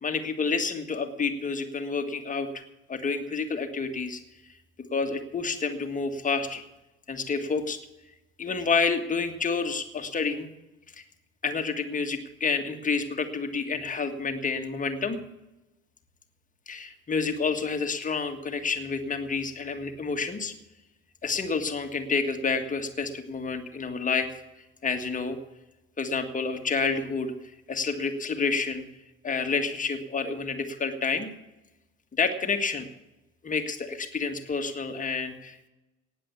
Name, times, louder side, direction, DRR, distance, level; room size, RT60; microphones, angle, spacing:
voice 1, 0.0-2.5 2.9-4.2 4.9-6.6 7.1-7.8 8.4-10.5 11.0-11.1 11.4-15.2 16.7-20.5 21.2-24.3 24.8-25.4 26.0-27.3 27.7-28.8 29.2-31.3 32.2-32.9 33.4-35.7, left 4 dB, 20° left, 6 dB, 1.8 m, -29 dB
18.5 x 7.7 x 7.1 m, 0.99 s
figure-of-eight pair, 70°, 40 cm